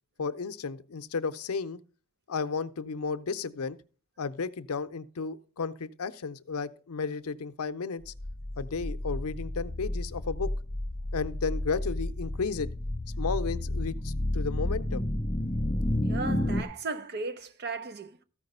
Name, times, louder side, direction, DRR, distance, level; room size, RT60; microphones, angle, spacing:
voice 1, 0.2-1.8 2.3-3.8 4.2-8.1 8.6-10.5 11.1-12.7 13.2-15.1, left 5 dB, 85° left, 0.6 m, -33 dB
sound 1, 8.2-16.6, left 1 dB, 15° left, 0.5 m, -31 dB
voice 2, 16.0-18.2, right 3 dB, 50° right, 0.7 m, -36 dB
13.5 x 4.9 x 5.4 m
head